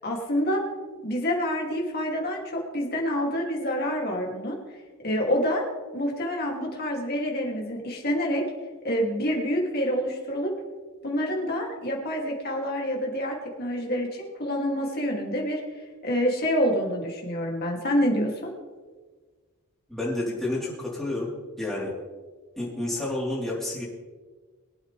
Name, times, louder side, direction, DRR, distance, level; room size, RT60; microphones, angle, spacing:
voice 1, 0.0-0.6 1.0-4.6 5.0-5.6 5.9-8.4 8.8-10.5 11.0-15.6 16.0-18.5, equal, 45° left, -1 dB, 2.7 m, -27 dB
voice 2, 19.9-21.3 21.6-21.9 22.6-23.8, left 2 dB, ahead, -6 dB, 3.8 m, -30 dB
23.0 x 8.7 x 3.4 m, 1.4 s
head